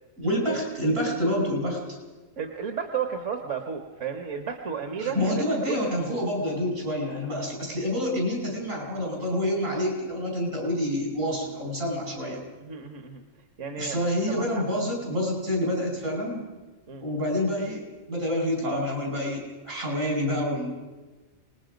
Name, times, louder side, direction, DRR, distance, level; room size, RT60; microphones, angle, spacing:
voice 1, 0.2-2.0 5.0-12.4 13.8-16.4 17.0-20.7, left 1 dB, 85° right, 0 dB, 6.0 m, -28 dB
voice 2, 2.4-6.2 12.6-13.2 13.6-14.0 14.3-14.6 16.9-17.0, right 6 dB, 70° right, 6 dB, 1.5 m, -33 dB
26.0 x 20.0 x 5.2 m, 1.2 s
omnidirectional pair, 1.3 m